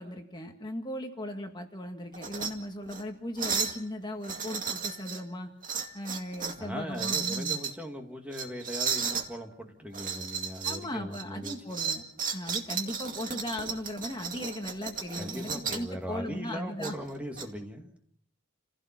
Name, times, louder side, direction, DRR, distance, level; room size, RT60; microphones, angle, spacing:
voice 1, 0.0-5.5 5.9-7.6 10.6-12.0 12.3-17.0, left 1 dB, 20° left, 3 dB, 1.8 m, -37 dB
sound 1, 2.1-2.5 2.9-3.0 3.4-3.8 4.2-5.2 5.6-6.6 6.9-7.7 8.3-9.3 9.9-10.8 11.1-15.9 16.8-17.4, right 6 dB, 40° right, 2.2 m, -34 dB
voice 2, 6.6-11.8 15.1-18.0, equal, 5° right, 3 dB, 2.1 m, -39 dB
29.5 x 16.0 x 5.9 m, 0.69 s
head